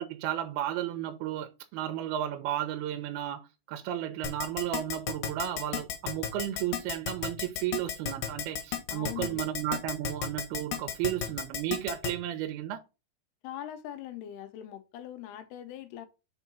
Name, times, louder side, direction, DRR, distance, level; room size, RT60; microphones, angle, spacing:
voice 1, 0.0-12.8, right 12 dB, 80° right, 2.5 m, -33 dB
Keyboard (musical), 4.2-12.1, left 9 dB, 70° left, 2.4 m, -33 dB
voice 2, 8.9-9.4 13.4-16.1, left 11 dB, 90° left, 2.7 m, -41 dB
5.6 x 4.5 x 4.2 m
omnidirectional pair, 4.7 m